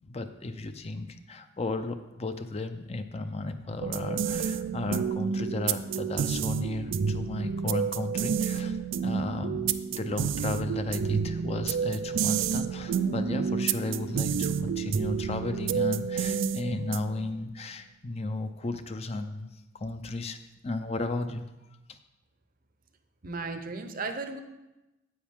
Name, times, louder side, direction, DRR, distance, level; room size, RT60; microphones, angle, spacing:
voice 1, 0.0-20.4 20.6-21.4 21.9-22.0, left 2 dB, 35° left, 8 dB, 0.5 m, -34 dB
sound 1, 3.8-17.3, right 6 dB, 85° right, 0.4 m, -29 dB
voice 2, 23.2-24.4, right 3 dB, 50° right, 8 dB, 0.7 m, -35 dB
9.5 x 8.2 x 3.6 m, 0.99 s
head